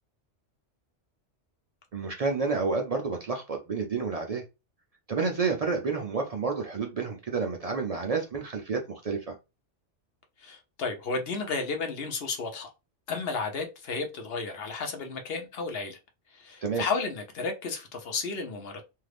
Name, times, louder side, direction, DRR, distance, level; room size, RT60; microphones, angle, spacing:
voice 1, 1.9-4.4 5.1-9.4 16.6-16.8, right 4 dB, 65° right, 0.3 m, -30 dB
voice 2, 10.4-12.7 13.1-16.0 16.3-18.8, left 4 dB, 60° left, 0.9 m, -33 dB
2.7 x 2.4 x 3.3 m
omnidirectional pair, 1.2 m